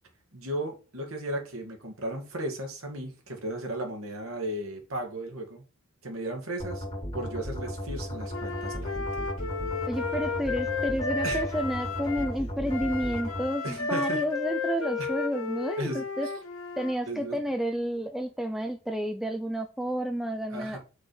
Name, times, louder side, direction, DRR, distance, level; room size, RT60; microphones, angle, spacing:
voice 1, 0.3-5.6 6.0-6.8 7.1-9.1 11.2-11.4 13.6-14.2 15.0-15.1 15.8-16.1 17.1-17.4 20.5-20.8, right 1 dB, 85° right, 2.0 m, -35 dB
sound 1, 6.6-13.4, equal, 25° left, 2.8 m, -35 dB
Wind instrument woodwind instrument, 8.3-12.3 12.7-16.9, left 4 dB, 80° left, 1.1 m, -33 dB
voice 2, 9.9-16.3 16.8-20.8, equal, ahead, 0.4 m, -30 dB
6.2 x 4.4 x 4.8 m
head